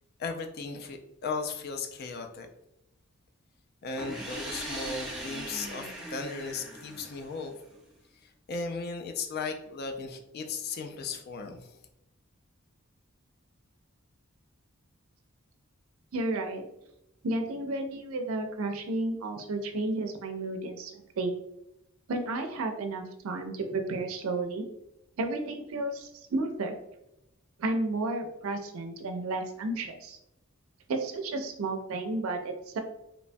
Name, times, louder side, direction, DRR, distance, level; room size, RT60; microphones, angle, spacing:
voice 1, 0.2-2.5 3.8-7.5 8.2-11.8, left 4 dB, 50° left, 5 dB, 0.3 m, -36 dB
sound 1, 4.0-7.7, right 1 dB, 5° right, 0.5 m, -39 dB
voice 2, 16.1-16.6 17.2-21.3 22.1-24.7 25.2-26.7 27.6-30.2 30.9-32.8, right 2 dB, 85° right, 5 dB, 0.4 m, -32 dB
3.0 x 2.1 x 2.5 m, 0.85 s
head